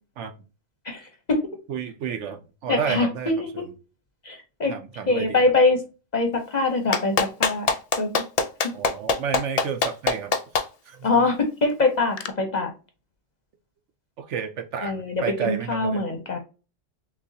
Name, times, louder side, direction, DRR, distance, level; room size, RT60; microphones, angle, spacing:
voice 1, 0.8-1.4 2.7-3.7 4.2-4.7 5.1-5.8 6.1-7.7 8.0-8.1 11.0-12.7 14.8-16.4, left 3 dB, 40° left, 0.7 m, -23 dB
voice 2, 1.7-3.6 4.7-5.4 8.7-10.3 10.9-11.3 14.2-16.0, right 7 dB, 70° right, 0.9 m, -31 dB
Clapping, 6.9-10.6 12.2-12.3, left 5 dB, 75° left, 0.3 m, -22 dB
6.2 x 2.4 x 2.7 m
omnidirectional pair, 1.3 m